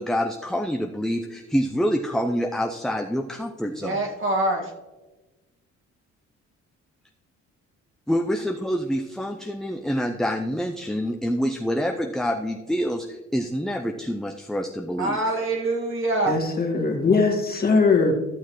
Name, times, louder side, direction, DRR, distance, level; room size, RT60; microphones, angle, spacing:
voice 1, 0.0-4.0 8.1-15.2, equal, ahead, 3 dB, 0.5 m, -26 dB
voice 2, 3.7-4.7 15.0-16.4, right 2 dB, 40° right, 0 dB, 1.9 m, -25 dB
voice 3, 16.3-18.1, left 4 dB, 30° left, 0 dB, 1.8 m, -20 dB
13.5 x 6.3 x 3.1 m, 1.1 s
cardioid pair, 90°, 30 cm